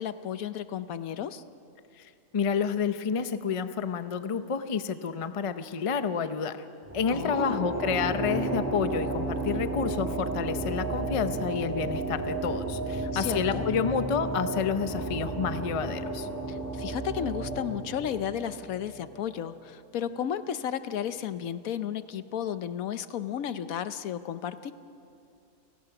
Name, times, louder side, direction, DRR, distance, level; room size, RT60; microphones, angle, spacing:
voice 1, 0.0-1.4 7.1-7.7 13.1-13.7 16.5-24.7, left 9 dB, 70° left, 12 dB, 1.1 m, -33 dB
voice 2, 2.0-6.6 6.9-16.3, left 6 dB, 35° left, 10 dB, 0.5 m, -29 dB
sound 1, 6.8-19.4, right 2 dB, 10° right, 1.9 m, -33 dB
30.0 x 18.0 x 5.9 m, 2.6 s
omnidirectional pair, 1.6 m